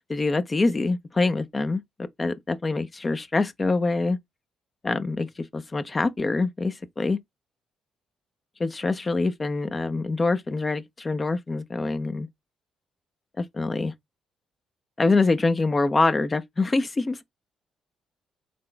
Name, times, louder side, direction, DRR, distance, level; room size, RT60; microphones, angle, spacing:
voice 1, 0.1-4.2 4.8-7.2 8.6-12.3 13.4-13.9 15.0-17.2, left 3 dB, 30° left, 0.7 m, -25 dB
4.1 x 3.3 x 3.3 m
hypercardioid pair, 50°, 0 cm